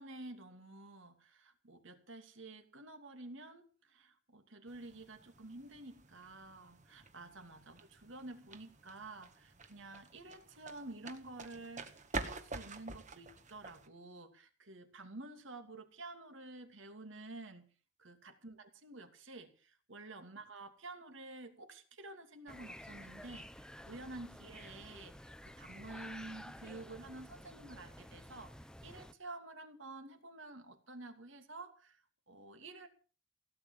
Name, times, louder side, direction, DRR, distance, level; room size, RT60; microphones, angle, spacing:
voice 1, 0.0-17.7 18.0-32.9, right 2 dB, 65° right, 7 dB, 2.7 m, -50 dB
sound 1, 4.7-13.9, right 3 dB, 35° right, 1.7 m, -48 dB
sound 2, 22.5-29.1, left 1 dB, 5° left, 0.6 m, -52 dB
17.0 x 9.5 x 7.2 m, 0.38 s
head